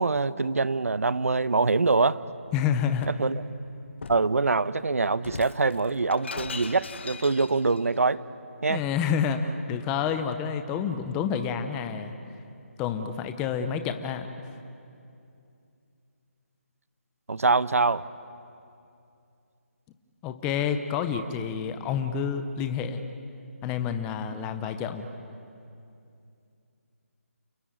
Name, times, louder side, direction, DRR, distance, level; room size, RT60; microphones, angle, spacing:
voice 1, 0.0-2.2 3.2-3.4 4.1-8.2 8.6-8.8 17.3-18.0, right 3 dB, 80° right, 16 dB, 1.0 m, -24 dB
Shatter, 2.4-3.3 4.0-4.3 5.2-7.8, left 4 dB, 50° left, 1.4 m, -39 dB
voice 2, 2.5-3.1 8.7-12.1 12.8-14.3 20.2-23.0 23.6-25.1, left 7 dB, 10° left, 8 dB, 0.6 m, -28 dB
28.5 x 21.5 x 8.9 m, 2.6 s
hypercardioid pair, 170°, 8 cm